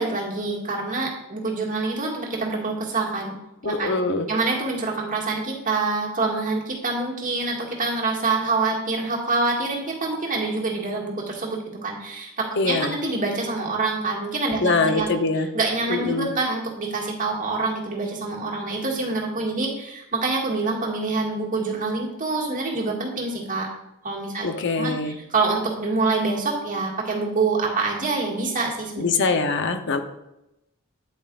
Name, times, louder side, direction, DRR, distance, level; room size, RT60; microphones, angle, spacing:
voice 1, 0.0-3.4 3.6-4.0 4.3-23.7 24.0-24.5 24.7-29.0, right 3 dB, 40° right, -2 dB, 1.9 m, -26 dB
voice 2, 3.6-4.3 12.6-12.9 14.6-15.5 15.9-16.3 24.4-25.1 29.0-30.0, left 3 dB, 55° left, 7 dB, 0.8 m, -23 dB
9.0 x 8.6 x 2.4 m, 0.88 s
head